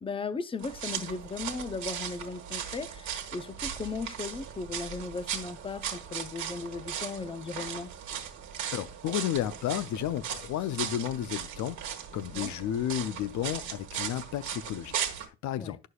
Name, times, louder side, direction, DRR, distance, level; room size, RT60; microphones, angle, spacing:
voice 1, 0.0-7.9 12.3-12.5 15.6-15.8, left 4 dB, 20° left, 0.6 m, -37 dB
sound 1, 0.6-15.3, right 8 dB, 70° right, 1.4 m, -38 dB
voice 2, 8.7-15.8, left 11 dB, 70° left, 0.5 m, -33 dB
9.4 x 6.4 x 2.3 m
cardioid pair, 90°, 30 cm